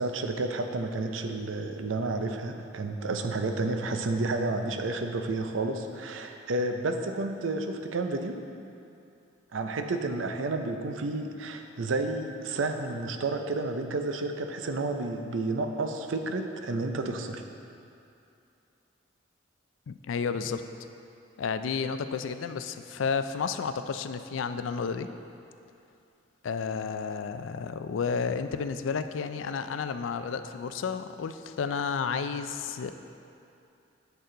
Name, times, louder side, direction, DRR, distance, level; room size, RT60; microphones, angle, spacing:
voice 1, 0.0-8.4 9.5-17.4, right 2 dB, 90° right, 6 dB, 0.6 m, -31 dB
voice 2, 19.9-20.6 21.4-25.1 26.4-32.9, left 5 dB, 85° left, 10 dB, 0.4 m, -31 dB
8.0 x 6.7 x 3.8 m, 2.6 s
head